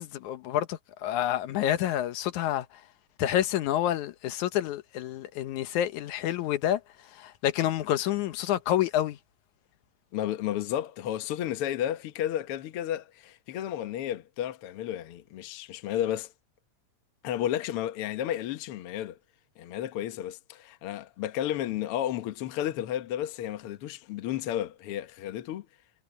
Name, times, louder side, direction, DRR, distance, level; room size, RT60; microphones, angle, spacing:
voice 1, 0.0-2.7 3.2-6.8 7.2-9.2, left 12 dB, 85° left, 2.4 m, -28 dB
voice 2, 10.1-16.3 17.2-19.2 19.6-25.7, left 11 dB, 60° left, 1.8 m, -32 dB
omnidirectional pair, 3.4 m